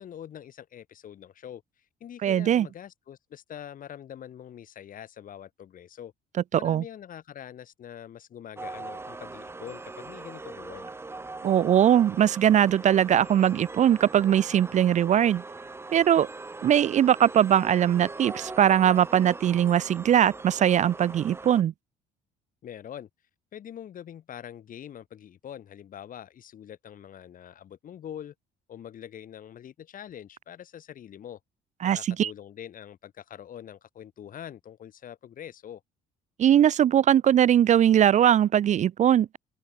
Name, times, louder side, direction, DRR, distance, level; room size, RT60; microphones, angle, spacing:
voice 1, 0.0-1.6 2.0-6.1 6.5-10.9 22.6-23.1 23.5-28.3 28.7-31.4 31.8-35.8, left 10 dB, 55° left, 7.9 m, -44 dB
voice 2, 2.2-2.7 6.6-6.8 11.4-15.4 15.9-16.3 16.6-21.7 31.8-32.3 36.4-39.4, right 10 dB, 45° right, 0.6 m, -21 dB
cobalt-eel, 8.6-21.6, right 3 dB, 15° right, 1.2 m, -41 dB
open air
cardioid pair, 110°, 17 cm